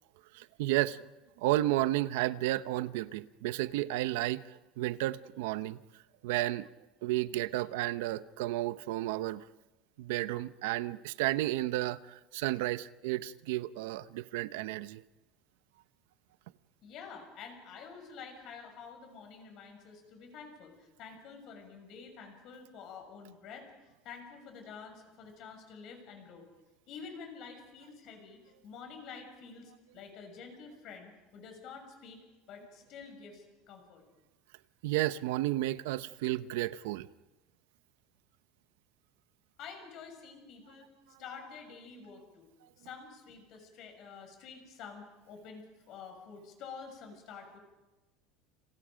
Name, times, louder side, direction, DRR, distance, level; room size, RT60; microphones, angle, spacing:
voice 1, 0.3-1.0 1.4-5.8 6.2-6.7 7.0-9.4 10.0-15.0 34.8-37.1, right 16 dB, 90° right, 0.8 m, -32 dB
voice 2, 16.8-23.7 24.0-26.5 26.9-32.2 32.5-34.0 39.6-40.9 41.2-42.5 42.8-47.6, left 5 dB, 40° left, 6.7 m, -48 dB
30.0 x 28.5 x 5.2 m
cardioid pair, 175°, 0 cm